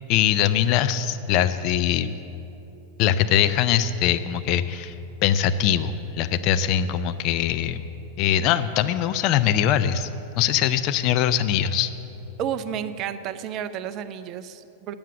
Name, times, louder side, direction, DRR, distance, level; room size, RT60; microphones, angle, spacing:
voice 1, 0.1-2.2 3.0-4.9 5.2-7.8 8.2-10.1 10.4-11.9, left 10 dB, 40° left, 11 dB, 0.4 m, -22 dB
voice 2, 12.4-14.9, right 9 dB, 35° right, 12 dB, 0.5 m, -31 dB
8.6 x 7.4 x 8.1 m, 2.9 s
figure-of-eight pair, 90°, 0 cm